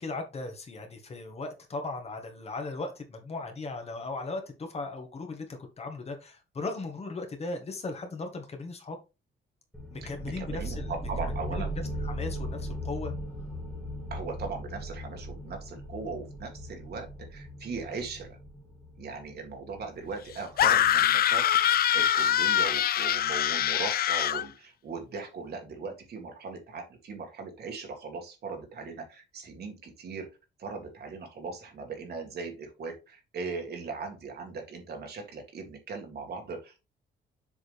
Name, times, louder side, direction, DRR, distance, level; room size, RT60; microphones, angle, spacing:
voice 1, 0.0-9.0 9.9-10.9 11.2-11.6 12.0-13.1, left 3 dB, 30° left, 4 dB, 1.6 m, -37 dB
sound 1, 9.7-21.1, equal, 5° left, 1.6 m, -38 dB
voice 2, 10.0-11.7 14.1-18.4 19.0-30.3 30.6-36.9, right 4 dB, 55° right, 3 dB, 2.1 m, -39 dB
sound 2, 20.6-24.4, left 10 dB, 50° left, 0.4 m, -24 dB
7.2 x 4.8 x 3.4 m, 0.27 s
cardioid pair, 155°, 20 cm